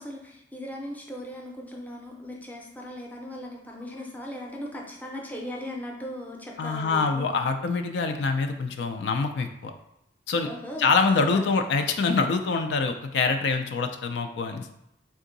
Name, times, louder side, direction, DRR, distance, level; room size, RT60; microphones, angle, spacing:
voice 1, 0.0-7.3 10.4-10.9 11.2-11.4, left 1 dB, 10° left, -1 dB, 0.6 m, -38 dB
voice 2, 6.6-9.7 10.3-10.5 10.8-14.7, left 4 dB, 70° left, 6 dB, 0.4 m, -25 dB
3.6 x 2.7 x 3.9 m, 0.82 s
head